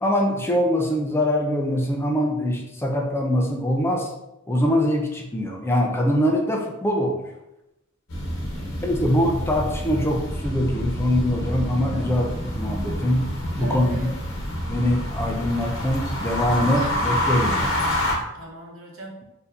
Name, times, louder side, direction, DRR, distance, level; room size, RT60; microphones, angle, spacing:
voice 1, 0.0-4.1 4.5-7.2 8.8-12.3 12.5-13.2 13.6-14.0 14.7-17.7, equal, 10° left, 1 dB, 0.4 m, -23 dB
sound 1, 8.1-18.1, equal, 80° left, 0.9 m, -27 dB
voice 2, 8.5-8.8 11.9-12.1 13.5-14.1 17.4-17.7 18.3-19.2, right 1 dB, 85° right, -1 dB, 0.9 m, -40 dB
4.3 x 2.7 x 2.6 m, 0.90 s
head